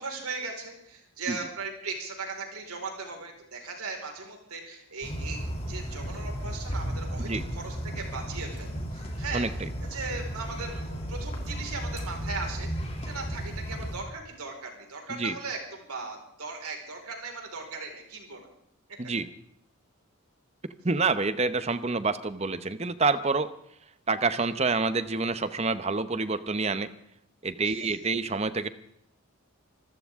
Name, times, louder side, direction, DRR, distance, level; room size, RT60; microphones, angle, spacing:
voice 1, 0.0-9.4 9.8-18.5 27.6-28.0, right 4 dB, 85° right, 2 dB, 4.7 m, -38 dB
sound 1, 5.0-14.0, equal, 30° left, 2.8 m, -34 dB
voice 2, 9.3-9.7 15.1-15.4 19.0-19.3 20.8-23.5 24.1-26.9 27.4-28.7, right 3 dB, 30° right, 13 dB, 0.8 m, -27 dB
25.0 x 14.5 x 3.6 m, 0.74 s
head